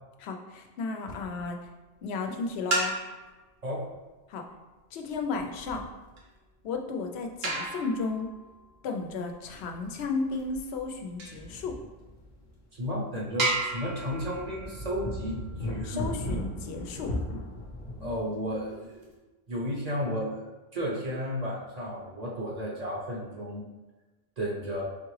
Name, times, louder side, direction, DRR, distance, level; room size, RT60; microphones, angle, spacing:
voice 1, 0.2-1.6 2.0-2.9 4.3-4.5 4.9-5.8 6.6-8.3 8.8-11.8 15.8-17.1, left 4 dB, 90° left, 4 dB, 0.8 m, -33 dB
sound 1, 1.2-1.6 2.5-3.4 5.1-11.5 12.2-12.3 12.7-12.8 13.4-16.0 18.1-19.1, right 2 dB, 75° right, 1.1 m, -35 dB
sound 2, 9.5-9.7 10.0-10.1 11.0-12.5 12.8-12.9 13.5-18.2, left 1 dB, 55° left, 0.7 m, -37 dB
voice 2, 12.8-16.1 18.0-19.1 19.5-23.7 24.4-24.8, equal, 40° right, -4 dB, 0.8 m, -33 dB
4.1 x 3.5 x 3.1 m, 1.2 s
omnidirectional pair, 1.0 m